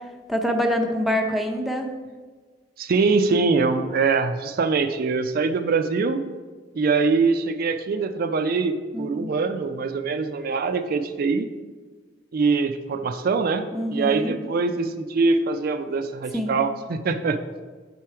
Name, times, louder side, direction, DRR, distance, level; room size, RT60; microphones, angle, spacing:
voice 1, 0.3-1.9 8.9-9.3 13.7-14.3 16.3-16.6, equal, ahead, 3 dB, 0.5 m, -25 dB
voice 2, 2.8-6.2 6.8-11.5 12.3-17.4, right 4 dB, 55° right, 8 dB, 0.4 m, -23 dB
6.8 x 4.4 x 4.7 m, 1.4 s
head